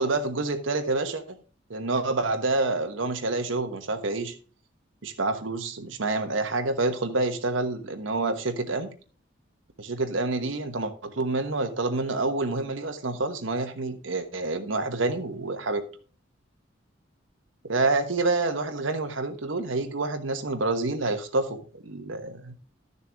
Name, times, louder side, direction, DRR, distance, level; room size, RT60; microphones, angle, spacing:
voice 1, 0.0-1.4 1.7-4.3 5.0-8.9 9.8-15.8 17.6-22.6, right 2 dB, 80° right, 1.2 m, -28 dB
12.5 x 6.7 x 3.5 m
head